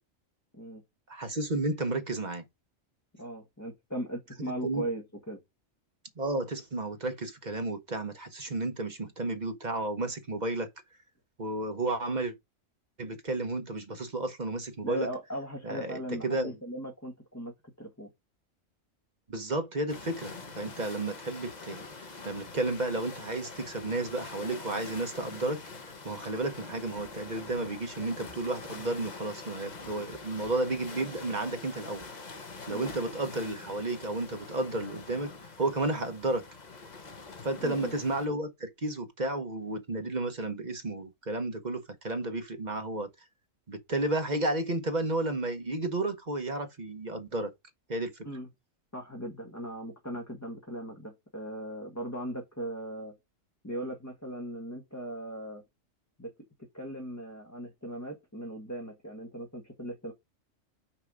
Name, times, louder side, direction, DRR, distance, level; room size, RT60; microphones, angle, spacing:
voice 1, 1.1-2.4 4.5-4.8 6.2-10.7 11.4-12.3 13.0-15.1 15.6-16.5 19.3-21.8 22.2-25.6 26.0-32.1 32.7-35.3 35.6-36.5 37.4-43.1 43.7-47.5 47.9-48.1, right 2 dB, 35° right, 1.1 m, -32 dB
voice 2, 3.2-5.4 14.8-18.1 32.7-32.9 37.6-37.9 48.2-48.5 48.9-53.1 53.6-55.6 56.2-56.3 56.7-60.1, right 1 dB, 15° left, 1.6 m, -38 dB
sound 1, 19.9-38.3, left 4 dB, 35° left, 1.1 m, -45 dB
5.9 x 4.7 x 5.0 m
omnidirectional pair, 1.4 m